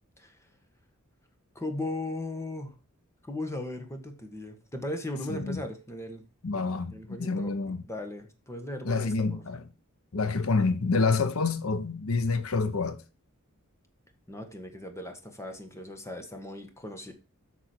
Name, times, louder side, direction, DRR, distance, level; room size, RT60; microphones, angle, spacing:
voice 1, 1.5-2.8 3.2-6.2 6.9-7.5 7.8-9.6 14.3-17.1, left 1 dB, 15° left, 1.5 m, -37 dB
voice 2, 5.3-5.6 6.4-7.8 8.8-9.6 10.1-13.0, left 4 dB, 80° left, 0.8 m, -28 dB
8.2 x 6.1 x 4.4 m
head